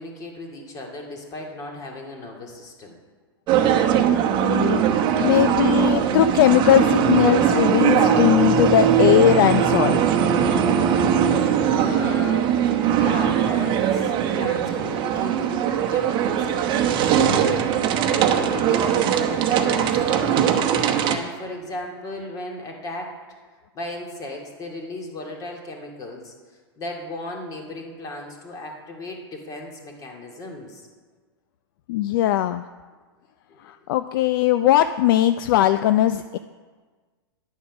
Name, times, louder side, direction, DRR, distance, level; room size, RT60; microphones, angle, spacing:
voice 1, 0.0-3.0 11.7-12.5 12.9-17.0 18.0-20.5 21.0-23.1 23.7-26.3 26.8-30.9 33.5-33.6, left 2 dB, 25° left, 1 dB, 2.1 m, -36 dB
sound 1, 3.5-21.2, right 8 dB, 35° right, 1.0 m, -20 dB
voice 2, 4.3-4.8 5.2-10.1 31.9-32.6 33.6-36.4, left 12 dB, 55° left, 12 dB, 0.4 m, -19 dB
10.5 x 7.1 x 6.0 m, 1.4 s
hypercardioid pair, 125°, 13 cm